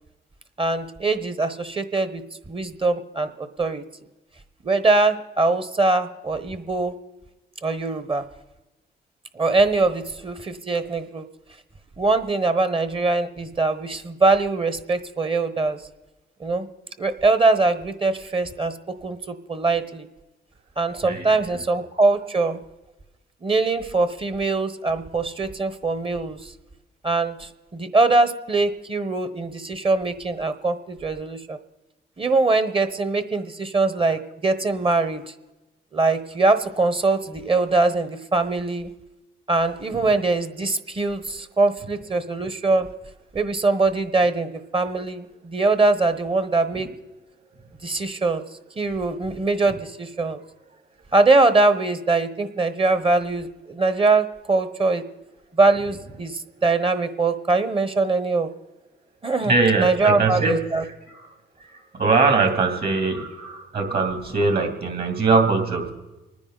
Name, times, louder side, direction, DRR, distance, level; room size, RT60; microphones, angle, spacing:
voice 1, 0.6-2.2 2.5-3.8 4.6-6.9 7.6-8.2 9.3-11.3 12.0-15.8 16.4-16.7 17.0-20.1 20.8-22.6 23.4-26.5 27.0-31.6 32.2-35.3 35.9-38.9 39.5-42.9 43.3-46.9 47.8-48.4 48.8-50.4 51.1-55.0 55.5-58.5 59.2-59.5 59.8-60.8, right 3 dB, 25° right, 11 dB, 1.1 m, -22 dB
voice 2, 21.0-21.4 39.9-40.0 59.4-61.3 61.6-65.9, right 4 dB, 50° right, 4 dB, 2.8 m, -22 dB
25.5 x 9.9 x 4.0 m, 1.1 s
cardioid pair, 90°, 20 cm